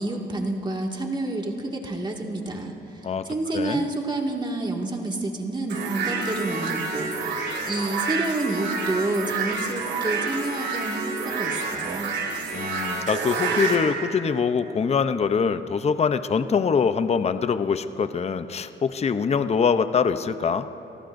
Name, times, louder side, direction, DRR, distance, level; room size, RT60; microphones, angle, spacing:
voice 1, 0.0-12.1, right 2 dB, 20° right, 0 dB, 2.1 m, -29 dB
voice 2, 3.5-3.9 12.5-20.7, left 6 dB, 30° left, 11 dB, 0.6 m, -24 dB
sound 1, 5.7-13.8, right 4 dB, 65° right, 2.8 m, -28 dB
30.0 x 18.5 x 2.6 m, 2.9 s
cardioid pair, 90°, 20 cm